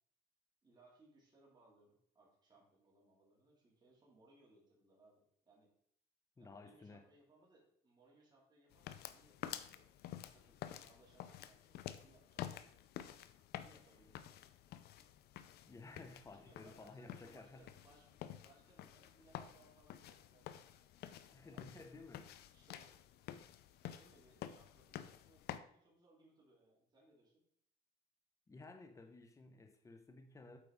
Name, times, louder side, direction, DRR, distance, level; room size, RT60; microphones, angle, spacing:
voice 1, 0.6-5.7 6.4-9.9 10.3-12.7 13.5-14.4 16.3-22.0 22.5-23.4 23.8-27.4, right 2 dB, 25° right, -4 dB, 2.4 m, -68 dB
voice 2, 6.4-7.0 15.7-17.7 21.3-22.2 28.5-30.6, left 3 dB, 20° left, 5 dB, 0.8 m, -55 dB
sound 1, 8.7-25.6, left 11 dB, 70° left, 0.5 m, -51 dB
8.0 x 4.7 x 3.6 m, 0.67 s
cardioid pair, 110°, 17 cm